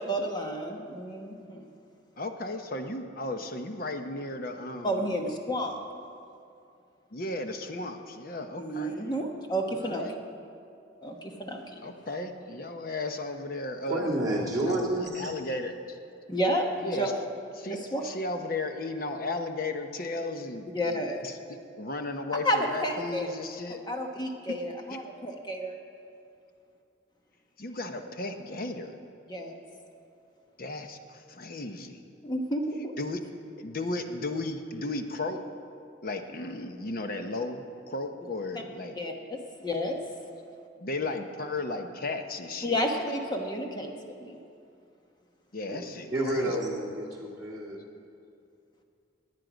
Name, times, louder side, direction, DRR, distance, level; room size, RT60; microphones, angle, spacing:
voice 1, 0.0-1.7 4.8-5.8 8.6-10.0 11.0-11.8 16.3-17.2 17.7-18.0 20.7-21.2 22.3-23.3 23.9-25.8 29.3-29.5 32.2-32.9 38.9-40.0 42.6-44.4, equal, 25° left, 2 dB, 1.1 m, -31 dB
voice 2, 2.2-5.2 7.1-9.0 9.7-10.2 11.8-14.2 14.4-16.0 16.8-17.1 17.6-21.4 21.8-23.8 27.6-29.0 30.6-32.0 33.0-33.2 33.6-35.4 36.0-39.0 40.8-42.8 45.5-46.6, left 2 dB, 50° left, 6 dB, 0.9 m, -35 dB
voice 3, 13.9-15.3 45.7-45.8 46.1-47.8, right 1 dB, 20° right, -7 dB, 2.0 m, -30 dB
18.5 x 9.5 x 5.2 m, 2.5 s
head